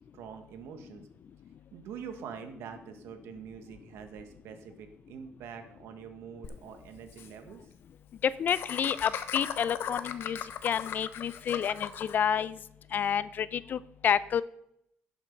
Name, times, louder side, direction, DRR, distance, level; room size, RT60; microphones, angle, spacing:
voice 1, 0.1-1.1 1.7-7.7, right 7 dB, 80° right, 7 dB, 1.5 m, -45 dB
Laughter, 6.4-6.5 6.8-6.9 7.1-7.3 8.5-12.1, left 9 dB, 65° left, 0.9 m, -37 dB
voice 2, 8.2-10.4 10.6-12.6 12.9-14.4, left 8 dB, 45° left, 18 dB, 0.5 m, -29 dB
11.0 x 7.3 x 5.3 m, 0.75 s
cardioid pair, 125°, 4 cm